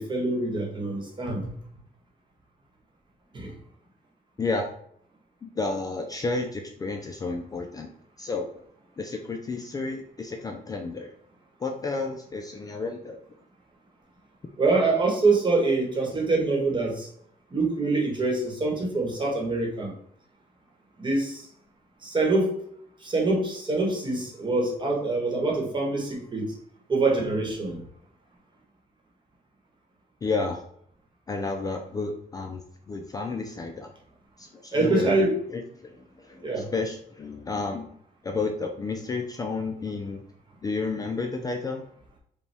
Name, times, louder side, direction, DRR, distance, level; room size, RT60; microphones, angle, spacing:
voice 1, 0.0-1.5 3.3-3.5 14.6-17.1 17.5-19.9 21.0-21.5 22.0-22.6 23.0-26.5 26.9-27.8 34.7-35.3 36.4-36.7, right 3 dB, 30° right, -1 dB, 1.1 m, -25 dB
voice 2, 4.4-4.7 5.4-7.9 8.2-8.5 9.0-11.1 11.6-13.2 30.2-30.6 31.3-33.9 34.4-35.1 35.5-37.9 38.2-40.2 40.6-41.8, left 3 dB, 25° left, 3 dB, 0.3 m, -31 dB
5.2 x 2.2 x 3.3 m, 0.68 s
wide cardioid pair, 165°, 16 cm